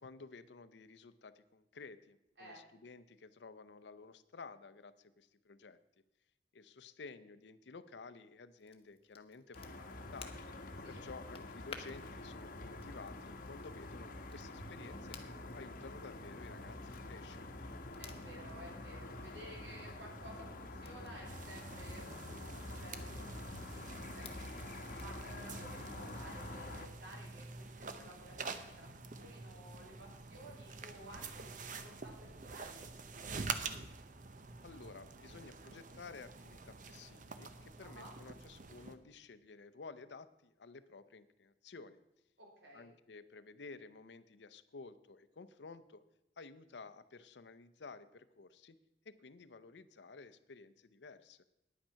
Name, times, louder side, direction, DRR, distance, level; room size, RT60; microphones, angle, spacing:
voice 1, 0.0-5.8 6.5-10.4 10.9-15.2 15.5-17.6 34.6-42.0 42.7-46.0 46.4-48.8 49.0-51.4, left 4 dB, 75° left, 13 dB, 0.6 m, -53 dB
Crackle, 8.6-25.2, left 5 dB, 35° left, 1.0 m, -59 dB
sound 1, 9.5-26.9, left 2 dB, 50° left, 1.0 m, -47 dB
voice 2, 18.0-33.6 37.8-38.2 42.4-42.9, right 1 dB, 75° right, -1 dB, 3.3 m, -55 dB
sound 2, 21.3-39.0, right 4 dB, 50° right, 0.7 m, -47 dB
9.9 x 8.9 x 5.7 m, 0.86 s
head